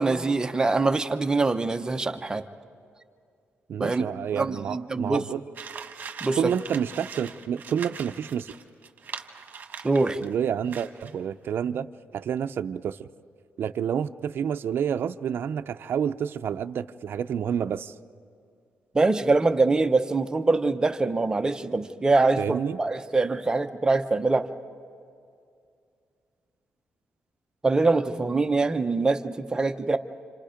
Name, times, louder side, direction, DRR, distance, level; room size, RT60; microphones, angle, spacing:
voice 1, 0.0-2.4 3.8-4.0 4.3-5.2 6.2-6.5 9.8-10.2 18.9-24.5 27.6-30.0, right 3 dB, 15° right, 7 dB, 0.7 m, -24 dB
voice 2, 3.7-5.4 6.3-8.5 10.2-11.9 12.1-13.1 13.6-17.9 22.4-22.8, right 8 dB, 60° right, 8 dB, 0.5 m, -29 dB
sound 1, 5.6-10.3 10.7-11.2, right 6 dB, 45° right, 1.4 m, -41 dB
29.5 x 27.0 x 5.1 m, 2.3 s
wide cardioid pair, 160°, 4 cm